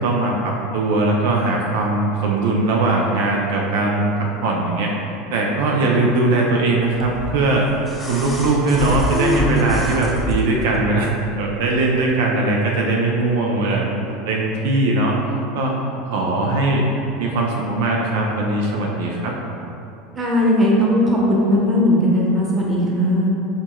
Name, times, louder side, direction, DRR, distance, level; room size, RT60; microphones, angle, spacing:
voice 1, 0.0-4.9 5.3-7.7 8.1-11.1 11.4-13.9 14.3-15.2 15.5-15.8 16.1-16.9 17.2-19.4, right 2 dB, 80° right, -1 dB, 0.5 m, -20 dB
sound 1, 7.0-10.8 12.0-12.1, left 1 dB, 10° left, 0.6 m, -25 dB
voice 2, 20.1-23.3, left 1 dB, 25° right, -4 dB, 0.9 m, -17 dB
6.4 x 3.0 x 2.2 m, 2.9 s
supercardioid pair, 120°, 0 cm